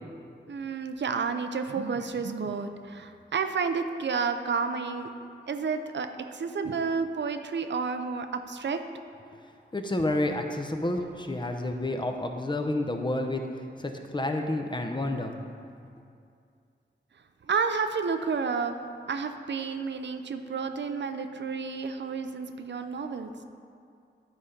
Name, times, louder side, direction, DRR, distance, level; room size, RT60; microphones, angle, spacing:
voice 1, 0.5-5.1 5.5-8.8 17.5-18.8 19.1-23.3, right 5 dB, 70° right, 7 dB, 0.5 m, -30 dB
voice 2, 9.7-13.4 13.8-15.3, left 1 dB, 25° left, 4 dB, 0.7 m, -29 dB
11.5 x 4.2 x 5.1 m, 2.4 s
wide cardioid pair, 95°, 19 cm